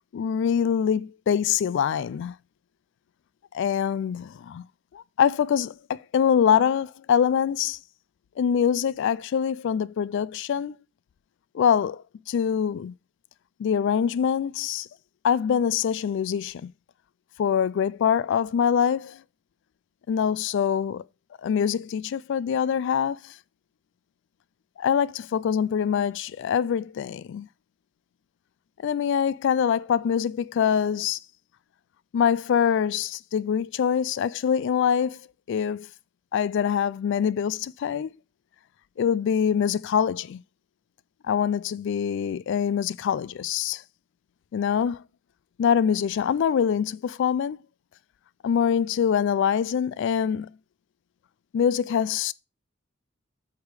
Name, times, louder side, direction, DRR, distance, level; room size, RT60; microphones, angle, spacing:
voice 1, 0.1-2.3 3.5-4.6 4.9-7.8 8.4-10.8 11.5-12.9 13.6-14.9 15.2-16.7 17.4-19.2 20.1-21.0 21.4-23.3 24.8-27.5 28.8-31.2 32.1-35.2 35.5-35.9 36.3-38.1 39.0-40.4 41.3-43.8 44.5-45.0 45.6-47.6 48.4-50.5 51.5-52.3, left 8 dB, 60° left, 0.3 m, -24 dB
8.0 x 3.5 x 4.7 m
head